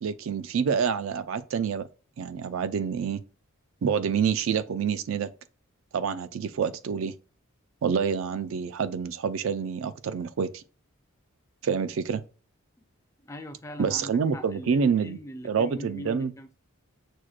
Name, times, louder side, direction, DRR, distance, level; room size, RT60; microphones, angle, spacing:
voice 1, 0.0-1.9 2.2-3.2 3.8-5.3 5.9-7.1 7.8-10.6 11.6-12.2 13.8-15.2 15.4-16.3, right 6 dB, 65° right, 0.3 m, -27 dB
voice 2, 13.3-16.5, left 1 dB, 15° left, 0.4 m, -41 dB
6.1 x 2.1 x 2.3 m
head